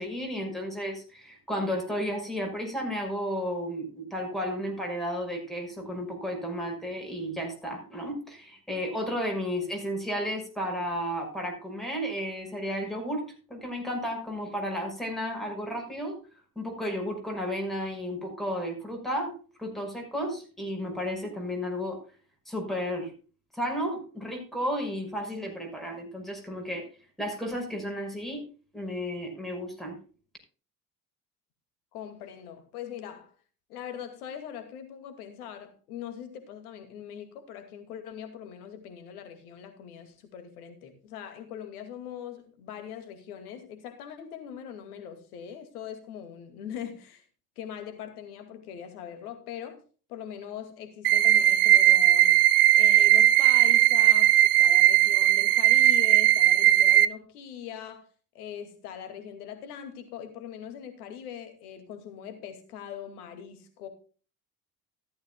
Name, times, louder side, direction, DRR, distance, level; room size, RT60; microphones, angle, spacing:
voice 1, 0.0-13.2 13.5-16.2 16.6-19.3 19.6-22.0 22.5-23.1 23.5-26.9 27.2-28.4 28.7-30.0, equal, ahead, 5.6 m, -33 dB
voice 2, 31.9-33.3 33.7-47.2 47.6-49.8 50.1-52.5 52.8-58.1 58.3-63.9, left 9 dB, 70° left, 2.3 m, -41 dB
sound 1, 51.0-57.0, right 13 dB, 70° right, 0.7 m, -19 dB
14.5 x 13.0 x 2.3 m
figure-of-eight pair, 55°, 47 cm